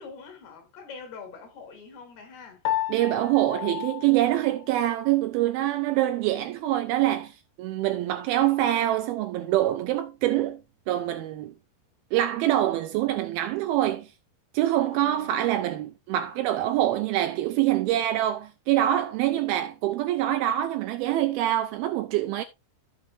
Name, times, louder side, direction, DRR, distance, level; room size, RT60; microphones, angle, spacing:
voice 1, 0.0-2.6 14.9-15.5 19.2-19.6, left 5 dB, 65° left, 4.4 m, -45 dB
Piano, 2.7-5.2, left 13 dB, 85° left, 3.4 m, -33 dB
voice 2, 2.9-10.6 10.9-11.5 12.1-14.1 14.5-22.4, right 13 dB, 85° right, 2.2 m, -25 dB
14.5 x 6.2 x 2.6 m
omnidirectional pair, 5.0 m